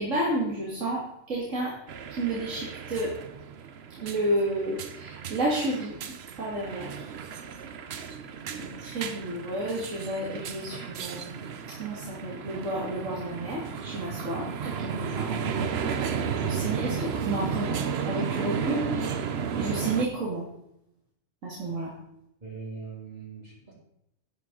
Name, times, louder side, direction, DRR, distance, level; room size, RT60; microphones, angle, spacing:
voice 1, 0.0-1.7 2.1-3.1 4.0-6.0 6.4-7.1 8.5-11.5 11.8-15.3 16.3-17.8 18.1-19.2 19.6-20.5 21.4-21.9, right 1 dB, 80° right, -5 dB, 2.5 m, -31 dB
sound 1, 1.9-20.1, right 6 dB, 60° right, 0.9 m, -33 dB
voice 2, 22.4-23.7, right 5 dB, 35° right, -5 dB, 2.4 m, -41 dB
11.5 x 9.3 x 3.9 m, 0.79 s
omnidirectional pair, 1.3 m